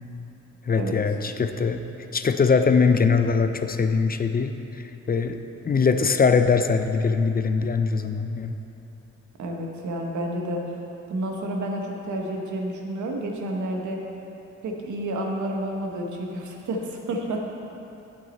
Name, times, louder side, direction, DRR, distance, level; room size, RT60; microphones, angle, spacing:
voice 1, 0.7-1.8 2.1-4.5 5.1-5.4 5.6-8.6, left 5 dB, 30° left, 8 dB, 0.4 m, -21 dB
voice 2, 9.4-10.6 11.1-14.0 14.6-17.4, right 1 dB, 85° right, 1 dB, 1.1 m, -30 dB
8.2 x 7.4 x 4.1 m, 3.0 s
cardioid pair, 75°, 29 cm